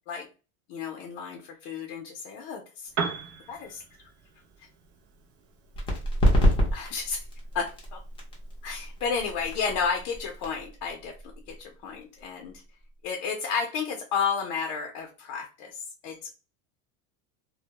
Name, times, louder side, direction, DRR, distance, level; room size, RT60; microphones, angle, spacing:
voice 1, 0.7-3.1 3.5-3.8 6.7-7.2 7.5-8.0 8.6-11.1 11.5-12.5 13.0-16.3, left 6 dB, 55° left, 2 dB, 0.6 m, -32 dB
Piano, 2.8-10.7, right 5 dB, 40° right, 0.5 m, -41 dB
sound 1, 5.7-13.1, equal, 15° left, 0.6 m, -28 dB
2.1 x 2.1 x 2.8 m, 0.32 s
supercardioid pair, 150°, 36 cm